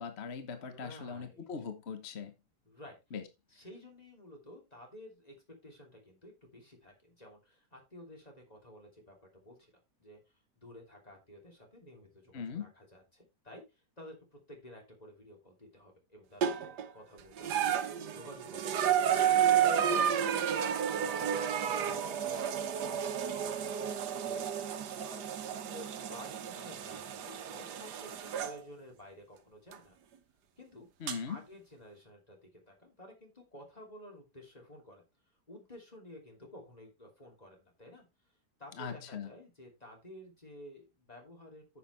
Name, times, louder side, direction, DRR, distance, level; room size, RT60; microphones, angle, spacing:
voice 1, 0.0-2.3 3.1-3.3 12.3-12.7 31.0-31.4 38.8-39.3, left 6 dB, 45° left, 1.3 m, -40 dB
voice 2, 0.6-1.5 2.6-3.0 3.5-5.3 5.6-9.7 10.0-10.2 10.6-19.3 19.6-20.1 20.5-24.4 25.0-30.0 30.6-30.9 31.3-35.0 35.5-38.0 38.6-41.8, left 1 dB, 25° left, 3.1 m, -53 dB
sound 1, 16.4-16.9 17.4-28.6 29.7-29.8 31.1-31.2, right 8 dB, 85° right, 1.5 m, -31 dB
9.9 x 7.3 x 3.4 m
omnidirectional pair, 1.7 m